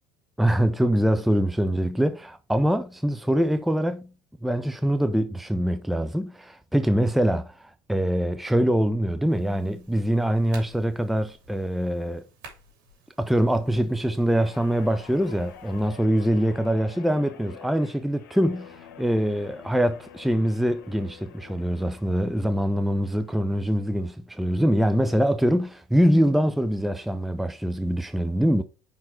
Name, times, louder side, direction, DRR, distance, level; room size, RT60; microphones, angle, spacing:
voice 1, 0.4-4.1 4.4-12.2 13.2-28.6, equal, ahead, 0.5 m, -24 dB
sound 1, 9.3-15.9, right 2 dB, 75° right, 2.7 m, -52 dB
Guitar, 14.3-22.9 23.3-23.6, left 9 dB, 85° left, 1.1 m, -48 dB
5.4 x 4.6 x 4.4 m
hypercardioid pair, 80°, 10 cm